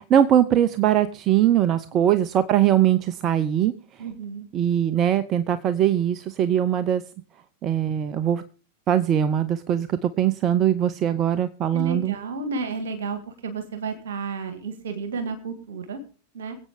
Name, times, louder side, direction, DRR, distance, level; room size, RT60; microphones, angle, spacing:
voice 1, 0.0-3.7 4.5-7.0 7.6-8.4 8.9-12.2, right 10 dB, 30° right, 14 dB, 0.7 m, -21 dB
voice 2, 4.0-4.5 11.7-16.0 16.3-16.6, right 4 dB, 60° right, 8 dB, 2.0 m, -32 dB
24.0 x 8.5 x 3.6 m, 0.39 s
figure-of-eight pair, 90°, 0 cm